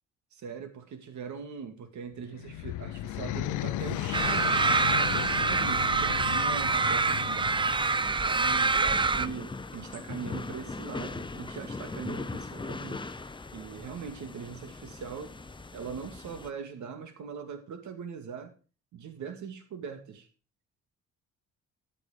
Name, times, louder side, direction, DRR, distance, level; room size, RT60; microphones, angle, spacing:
voice 1, 0.3-7.6 8.0-13.0 13.5-15.4 15.7-18.5 18.9-20.3, right 6 dB, 70° right, 2.2 m, -41 dB
sound 1, 2.1-8.2, left 15 dB, 80° left, 0.6 m, -35 dB
sound 2, 3.8-16.5, left 3 dB, 15° left, 0.9 m, -41 dB
sound 3, 4.1-9.3, right 4 dB, 15° right, 0.5 m, -26 dB
12.0 x 8.6 x 5.2 m
cardioid pair, 90°, 30 cm